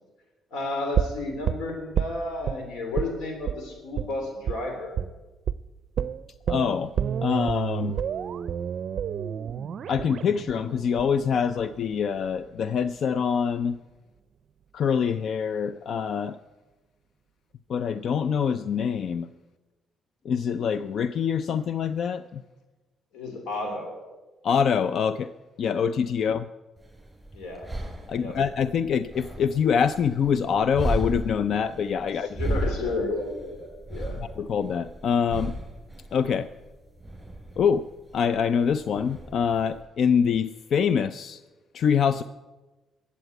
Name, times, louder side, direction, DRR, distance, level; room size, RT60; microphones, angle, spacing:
voice 1, 0.5-4.9 23.1-24.0 27.3-27.7 28.2-28.4 32.2-34.2, left 2 dB, 85° left, 3 dB, 3.2 m, -32 dB
sound 1, 0.9-2.6 3.0-3.2 3.5-3.6 4.0-4.1 4.5-4.6 5.0-5.2 5.5-5.6 6.0-12.0 12.3-12.4, right 8 dB, 60° right, 0.5 m, -29 dB
voice 2, 6.5-6.9 7.2-8.0 9.9-13.8 14.7-16.4 17.7-19.3 20.2-22.4 24.4-25.3 25.6-26.4 28.1-32.4 34.2-35.5 36.1-36.5 37.6-37.9 38.1-41.4 41.7-42.2, left 7 dB, 60° left, 13 dB, 0.5 m, -25 dB
sound 2, 26.8-39.8, right 1 dB, 10° right, 6.3 m, -35 dB
14.0 x 8.3 x 9.2 m, 1.2 s
cardioid pair, 90°, 0 cm